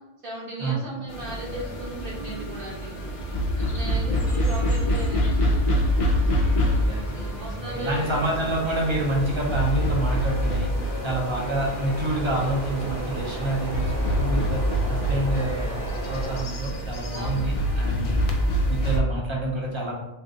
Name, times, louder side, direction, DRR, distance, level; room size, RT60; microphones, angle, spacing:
voice 1, 0.2-3.0 3.6-5.5 7.1-8.2 17.1-17.5, right 1 dB, 55° right, -5 dB, 1.1 m, -36 dB
sound 1, 1.1-19.0, equal, 60° left, 0.3 m, -26 dB
voice 2, 3.8-4.2 6.6-10.7 11.0-14.6 14.9-15.8 16.1-18.2 18.7-19.9, right 1 dB, 40° right, -2 dB, 0.4 m, -28 dB
sound 2, 4.3-19.0, equal, 20° left, 0.7 m, -47 dB
sound 3, 7.9-16.4, right 1 dB, 15° right, 0.8 m, -36 dB
3.4 x 2.6 x 2.5 m, 1.1 s
omnidirectional pair, 1.1 m